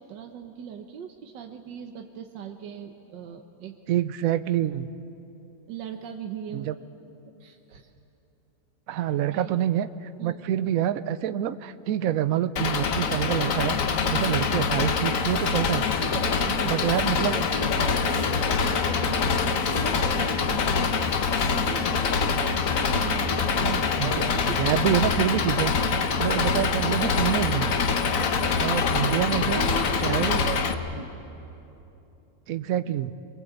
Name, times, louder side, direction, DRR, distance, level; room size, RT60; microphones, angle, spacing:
voice 1, 0.0-3.8 5.7-6.7 7.4-7.9 9.3-9.5 10.2-10.4 14.1-14.2 16.1-23.7 24.0-24.8 25.3-25.4 28.2-28.7 29.1-31.1, right 7 dB, 85° right, 4 dB, 1.6 m, -39 dB
voice 2, 3.9-4.9 6.5-6.7 8.9-13.8 14.1-15.9 16.7-17.4 23.6-25.7 26.2-27.8 28.6-29.6 30.0-30.4 32.5-33.1, right 11 dB, 60° right, 13 dB, 1.0 m, -26 dB
Engine, 12.6-30.7, left 5 dB, 55° left, 1.3 m, -25 dB
23.5 x 23.0 x 8.1 m, 2.9 s
omnidirectional pair, 1.9 m